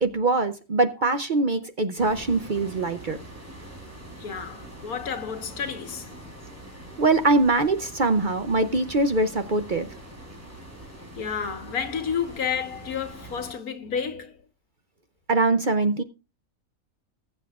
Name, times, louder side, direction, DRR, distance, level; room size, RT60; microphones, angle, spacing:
voice 1, 0.0-3.2 7.0-9.9 15.3-16.0, right 3 dB, 45° right, 0.7 m, -23 dB
sound 1, 2.0-13.5, right 1 dB, 10° right, 3.6 m, -43 dB
voice 2, 4.2-6.1 11.2-14.4, left 7 dB, 90° left, 1.8 m, -31 dB
20.5 x 7.8 x 2.4 m
omnidirectional pair, 1.5 m